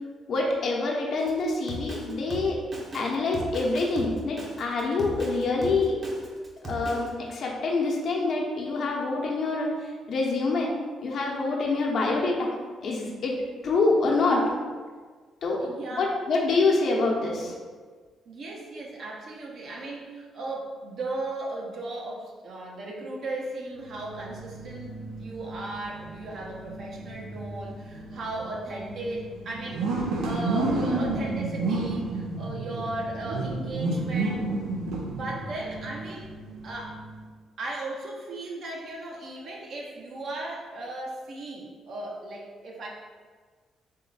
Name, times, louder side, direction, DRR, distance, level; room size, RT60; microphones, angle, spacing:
voice 1, 0.3-2.6 2.9-6.0 6.6-10.7 11.0-12.5 12.8-13.4 13.6-14.4 15.4-15.6 16.0-17.5, left 3 dB, 60° left, -2 dB, 0.9 m, -26 dB
Drum kit, 1.2-7.1, right 1 dB, 40° right, 0.9 m, -37 dB
voice 2, 15.6-16.1 18.3-34.5 35.2-36.3 36.6-37.0 37.6-42.9, right 2 dB, 60° right, -2 dB, 0.9 m, -36 dB
sound 1, 23.8-37.2, right 2 dB, 90° right, 0.7 m, -32 dB
3.8 x 3.3 x 4.0 m, 1.5 s
cardioid pair, 90°, 0 cm